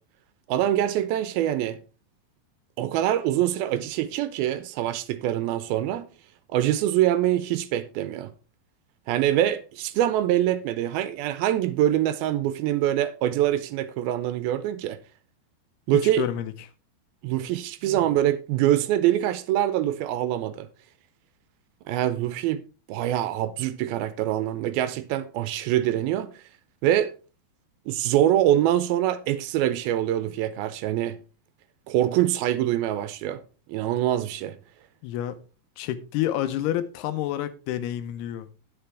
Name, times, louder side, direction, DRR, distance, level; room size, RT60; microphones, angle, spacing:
voice 1, 0.5-1.8 2.8-6.1 6.5-8.3 9.1-15.0 15.9-16.3 17.2-20.7 21.9-22.6 22.9-26.3 26.8-27.1 27.9-31.2 31.9-33.4 33.7-34.6, right 12 dB, 80° right, 2.4 m, -24 dB
voice 2, 15.9-16.7 35.0-35.4 35.8-38.5, left 12 dB, 85° left, 2.8 m, -29 dB
10.0 x 8.9 x 3.4 m
omnidirectional pair, 4.5 m